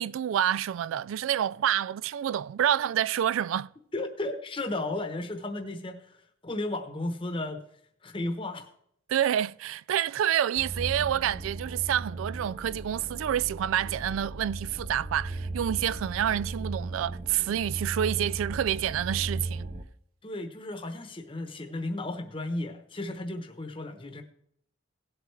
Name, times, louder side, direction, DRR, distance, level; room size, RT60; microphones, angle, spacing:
voice 1, 0.0-3.7 9.1-19.7, right 10 dB, 85° right, 0.3 m, -28 dB
voice 2, 3.9-6.0 6.4-7.6 8.0-8.7 20.2-24.2, left 2 dB, 25° left, 0.9 m, -34 dB
sound 1, 10.6-19.8, right 2 dB, 30° right, 0.7 m, -36 dB
17.5 x 7.9 x 3.2 m
head